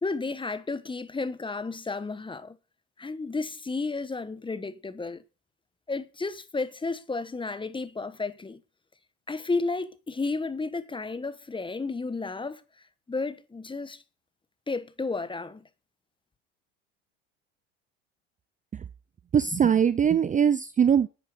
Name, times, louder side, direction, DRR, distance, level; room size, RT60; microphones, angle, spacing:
voice 1, 0.0-2.6 3.0-5.2 5.9-8.6 9.3-12.6 13.1-14.0 14.7-15.7, left 3 dB, 15° left, 1.3 m, -32 dB
voice 2, 19.3-21.1, right 8 dB, 20° right, 0.6 m, -21 dB
9.8 x 9.1 x 6.9 m
hypercardioid pair, 80°, 34 cm